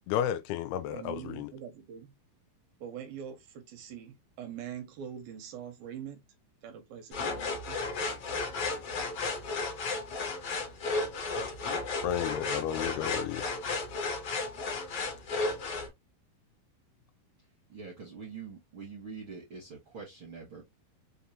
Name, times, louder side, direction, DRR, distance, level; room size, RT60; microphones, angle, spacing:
voice 1, 0.1-1.5 12.0-13.4, left 10 dB, 85° left, 2.5 m, -32 dB
voice 2, 0.9-2.1 2.8-6.2 6.6-7.9, right 8 dB, 80° right, 2.3 m, -43 dB
sound 1, 7.1-15.9, left 3 dB, 60° left, 1.5 m, -34 dB
voice 3, 17.7-20.6, right 5 dB, 65° right, 1.2 m, -44 dB
6.6 x 2.4 x 2.8 m
omnidirectional pair, 4.5 m